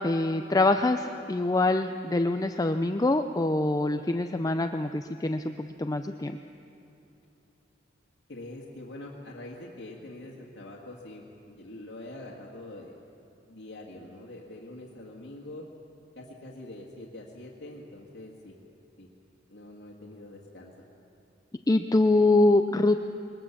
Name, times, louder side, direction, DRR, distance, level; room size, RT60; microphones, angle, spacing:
voice 1, 0.0-6.3 21.7-23.0, left 2 dB, 20° left, 8 dB, 0.5 m, -24 dB
voice 2, 8.3-13.0 13.5-15.6 16.2-18.5 19.0-19.1 19.5-20.7, left 1 dB, 90° left, -3 dB, 1.9 m, -44 dB
21.5 x 19.5 x 7.2 m, 2.8 s
head